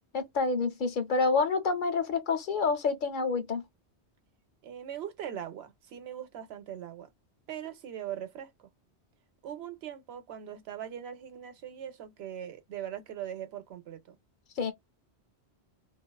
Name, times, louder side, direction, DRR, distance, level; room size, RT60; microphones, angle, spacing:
voice 1, 0.1-3.6 14.6-14.7, left 4 dB, 55° left, 0.7 m, -28 dB
voice 2, 4.6-7.1 7.5-8.7 9.4-14.1, right 10 dB, 70° right, 0.9 m, -41 dB
2.4 x 2.3 x 2.2 m
omnidirectional pair, 1.1 m